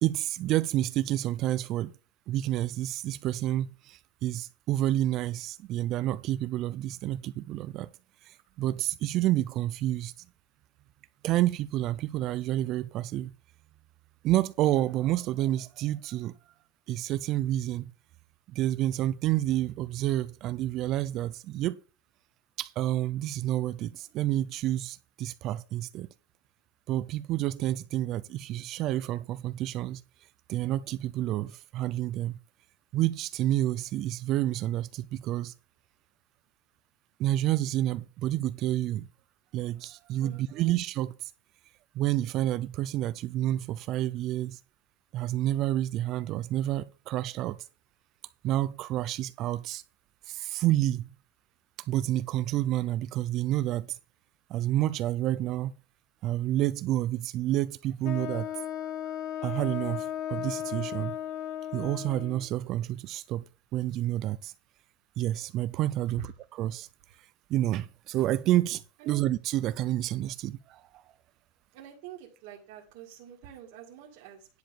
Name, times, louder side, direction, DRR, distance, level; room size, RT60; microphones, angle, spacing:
voice 1, 0.0-1.9 2.3-7.9 8.2-10.1 11.2-13.3 14.2-16.3 16.9-17.9 18.5-21.7 22.6-26.1 26.9-30.0 30.5-32.3 32.9-35.5 37.2-39.1 39.5-41.3 41.9-44.6 45.1-47.6 48.4-49.8 50.3-51.1 51.9-54.0 54.5-55.7 56.2-58.5 59.4-61.2 61.7-63.4 63.7-64.5 65.2-66.9 67.5-71.0, right 14 dB, 35° right, 0.4 m, -29 dB
voice 2, 40.2-40.7 69.0-69.2 71.7-74.5, right 10 dB, 55° right, 2.0 m, -47 dB
Wind instrument woodwind instrument, 58.0-62.5, left 10 dB, 45° left, 1.4 m, -35 dB
10.5 x 4.8 x 6.9 m
supercardioid pair, 170°, 0 cm